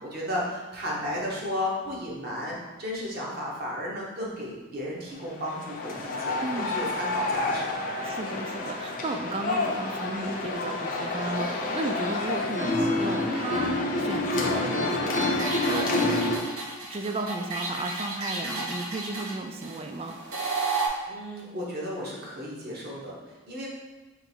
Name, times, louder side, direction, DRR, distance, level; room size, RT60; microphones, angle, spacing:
voice 1, 0.0-7.7 21.1-23.7, left 1 dB, 45° right, -4 dB, 1.1 m, -34 dB
sound 1, 5.3-16.4, left 2 dB, 40° left, 0.5 m, -28 dB
voice 2, 6.4-6.7 8.0-16.3 16.9-20.2, right 2 dB, 25° right, 4 dB, 0.3 m, -34 dB
sound 2, 15.3-20.9, right 3 dB, 70° right, 0.8 m, -32 dB
3.8 x 3.1 x 4.5 m, 1.2 s
head